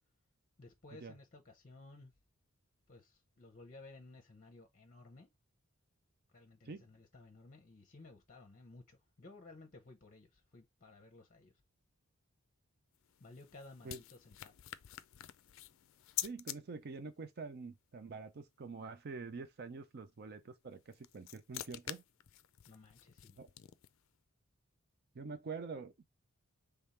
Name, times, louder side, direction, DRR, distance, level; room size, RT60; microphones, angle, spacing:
voice 1, 0.6-2.1 2.9-5.3 6.3-11.5 13.2-14.5 22.7-23.4, left 2 dB, 35° left, 0.8 m, -56 dB
sound 1, 12.9-16.6 20.7-24.1, left 13 dB, 60° left, 0.4 m, -47 dB
voice 2, 16.2-22.0 23.4-23.5 25.1-26.1, right 4 dB, 45° right, 0.5 m, -46 dB
3.6 x 3.4 x 4.2 m
head